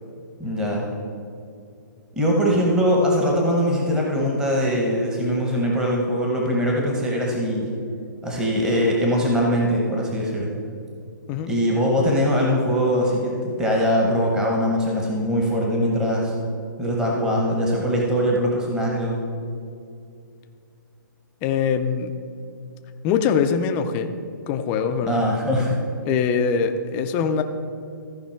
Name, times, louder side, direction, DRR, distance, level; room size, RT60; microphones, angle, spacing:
voice 1, 0.4-0.9 2.1-7.7 8.2-10.5 11.5-16.3 16.8-19.2 25.0-25.8, equal, 5° right, -2 dB, 0.9 m, -22 dB
voice 2, 21.4-22.2 23.0-24.1 24.5-25.2 26.0-27.4, left 6 dB, 15° left, 8 dB, 0.4 m, -23 dB
14.0 x 5.1 x 4.4 m, 2.4 s
hypercardioid pair, 160°, 11 cm